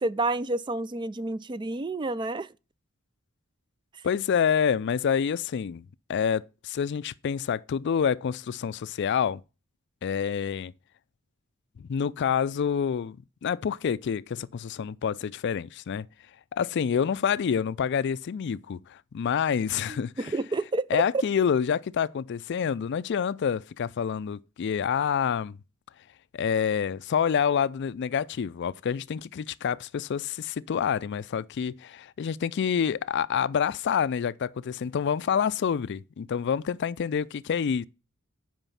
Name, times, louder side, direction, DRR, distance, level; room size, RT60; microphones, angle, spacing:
voice 1, 0.0-2.5 19.9-21.0, right 2 dB, 20° right, 0.3 m, -29 dB
voice 2, 4.0-5.8 6.1-9.4 10.0-10.7 11.8-16.1 16.5-20.3 20.9-25.6 26.3-37.8, left 7 dB, 55° left, 0.3 m, -27 dB
9.0 x 5.1 x 5.4 m
head